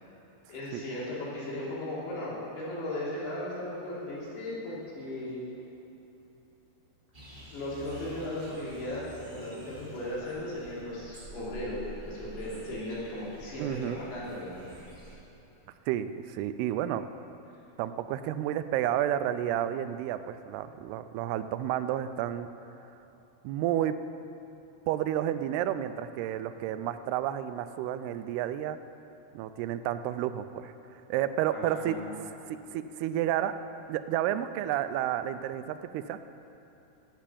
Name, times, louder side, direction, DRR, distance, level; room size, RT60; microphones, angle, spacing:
voice 1, 0.5-5.4 7.5-14.7 31.5-32.1, left 1 dB, 80° left, -8 dB, 5.1 m, -37 dB
sound 1, 7.1-15.1, right 1 dB, 15° right, 2.2 m, -48 dB
voice 2, 13.6-14.0 15.9-17.1 17.8-22.5 23.4-24.0 24.9-28.8 29.3-30.7 31.1-32.0 32.5-33.6 33.9-36.2, right 11 dB, 90° right, 11 dB, 2.6 m, -31 dB
10.5 x 8.7 x 8.4 m, 3.0 s
omnidirectional pair, 4.5 m